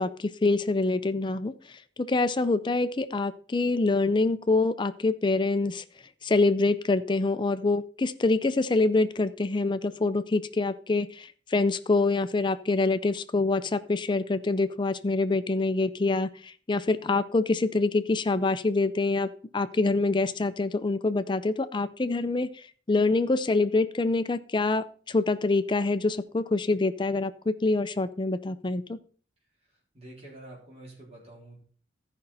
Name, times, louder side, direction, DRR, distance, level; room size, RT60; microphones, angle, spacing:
voice 1, 0.0-1.5 2.1-5.8 6.2-29.0, left 3 dB, 25° left, 12 dB, 0.5 m, -26 dB
voice 2, 29.9-31.6, right 1 dB, 35° right, -4 dB, 3.5 m, -47 dB
14.0 x 5.3 x 4.1 m, 0.43 s
head